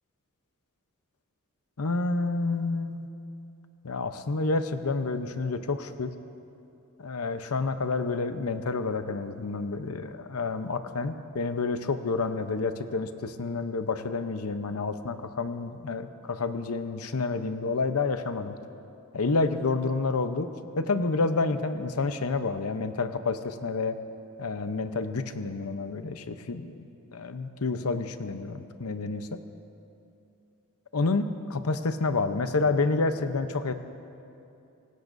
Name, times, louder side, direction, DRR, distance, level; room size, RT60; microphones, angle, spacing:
voice 1, 1.8-3.1 3.8-6.1 7.0-18.5 19.1-20.5 20.8-23.9 24.4-26.8 27.1-29.4 30.9-33.7, left 3 dB, 75° left, 9 dB, 0.8 m, -29 dB
24.5 x 18.5 x 2.6 m, 2.7 s
head